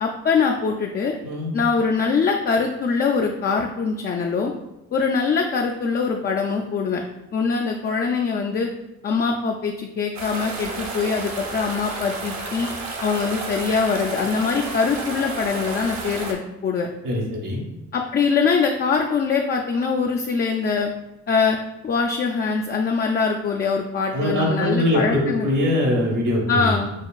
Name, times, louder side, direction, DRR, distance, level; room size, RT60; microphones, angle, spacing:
voice 1, 0.0-1.1 1.5-4.5 4.9-7.0 7.3-8.7 9.0-12.7 13.0-16.9 17.9-20.9 21.3-21.6 21.8-25.5 26.5-26.9, left 5 dB, 35° left, 2 dB, 0.4 m, -23 dB
sound 1, 10.2-16.3, right 3 dB, 60° right, 0.9 m, -31 dB
voice 2, 17.0-17.6 24.1-26.7, left 1 dB, 85° right, -2 dB, 1.3 m, -22 dB
6.4 x 2.3 x 2.3 m, 0.96 s
cardioid pair, 90°, 30 cm